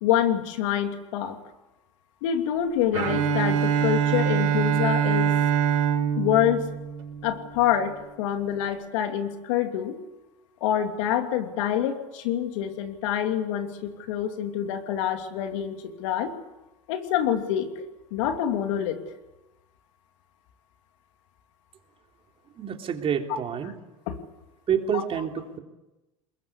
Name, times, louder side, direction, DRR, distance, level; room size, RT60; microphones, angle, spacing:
voice 1, 0.0-1.4 2.2-5.3 6.2-6.7 7.2-10.0 10.6-16.3 16.9-17.8 18.1-19.0 24.1-24.2 24.9-25.0, left 10 dB, 70° left, 6 dB, 2.9 m, -26 dB
Bowed string instrument, 2.9-7.8, right 8 dB, 70° right, 6.5 m, -24 dB
voice 2, 22.6-23.7 24.7-25.6, right 8 dB, 35° right, 3 dB, 3.3 m, -28 dB
22.0 x 21.5 x 8.4 m, 1.0 s
hypercardioid pair, 95°, 16 cm